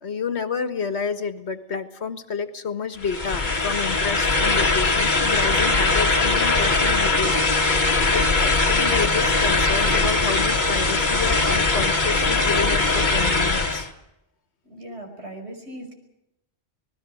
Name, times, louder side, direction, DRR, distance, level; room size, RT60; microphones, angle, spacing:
voice 1, 0.0-7.5 8.1-13.9, left 5 dB, 70° left, 9 dB, 1.8 m, -29 dB
sound 1, 3.0-13.9, left 3 dB, 40° left, 1.8 m, -21 dB
voice 2, 14.6-15.9, right 1 dB, 70° right, 4 dB, 5.6 m, -38 dB
27.0 x 19.5 x 6.4 m, 0.89 s
omnidirectional pair, 1.2 m